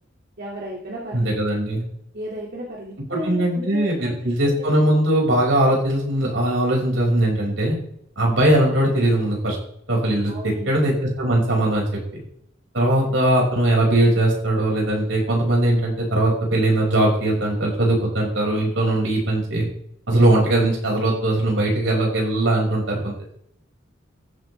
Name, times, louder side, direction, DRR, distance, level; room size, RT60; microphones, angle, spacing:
voice 1, 0.4-1.3 2.1-4.8 10.3-10.8 13.1-13.2, equal, 55° right, -4 dB, 2.3 m, -35 dB
voice 2, 1.1-1.8 3.1-7.8 8.2-9.6 9.9-12.0 12.7-19.7 20.1-23.3, right 1 dB, 80° right, -2 dB, 5.6 m, -20 dB
14.5 x 12.5 x 3.3 m, 0.71 s
head